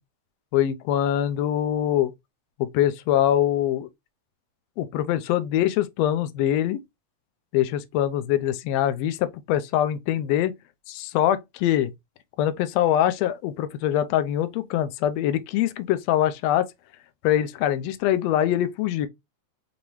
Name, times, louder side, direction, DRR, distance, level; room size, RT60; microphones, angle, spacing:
voice 1, 0.5-2.1 2.6-3.9 4.8-6.8 7.5-10.5 10.9-11.9 12.4-16.7 17.2-19.1, left 11 dB, 80° left, 1.6 m, -23 dB
5.3 x 2.9 x 3.0 m
omnidirectional pair, 3.4 m